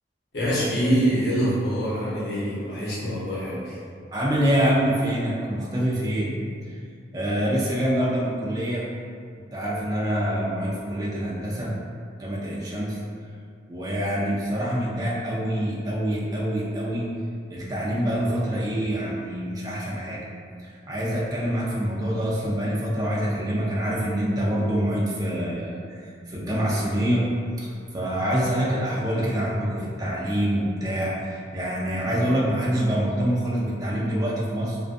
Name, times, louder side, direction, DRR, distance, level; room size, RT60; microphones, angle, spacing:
voice 1, 0.3-3.8, equal, 65° left, -9 dB, 0.8 m, -25 dB
voice 2, 4.1-6.3 6.7-6.8 7.1-8.8 9.5-11.7 12.2-13.0 13.7-17.1 17.5-20.2 20.6-27.3 27.6-34.8, equal, 20° right, -6 dB, 0.4 m, -26 dB
2.4 x 2.2 x 2.4 m, 2.3 s
head